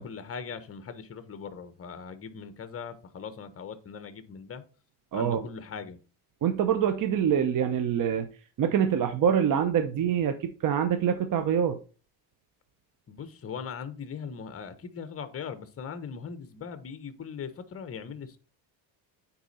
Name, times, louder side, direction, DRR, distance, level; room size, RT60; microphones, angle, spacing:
voice 1, 0.0-4.6 5.1-6.0 13.1-18.4, left 6 dB, 35° left, 1.2 m, -40 dB
voice 2, 5.1-5.4 6.4-8.3 8.6-11.8, right 8 dB, 50° right, 0.9 m, -25 dB
9.3 x 4.3 x 4.2 m
cardioid pair, 120°, 41 cm